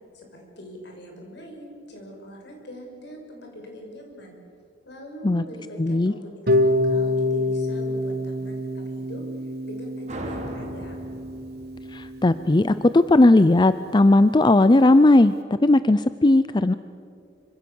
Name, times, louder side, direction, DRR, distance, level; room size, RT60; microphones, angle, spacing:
voice 1, 0.1-4.4 4.9-9.2 9.6-11.1, equal, 65° left, 2 dB, 6.3 m, -42 dB
voice 2, 5.8-6.1 11.9-15.4 15.6-16.7, left 2 dB, 25° left, 13 dB, 0.5 m, -17 dB
Harp, 6.5-12.5, left 1 dB, 60° right, 1.9 m, -26 dB
sound 1, 10.1-13.4, right 1 dB, 40° right, 3.4 m, -38 dB
26.0 x 25.5 x 7.1 m, 2.4 s
head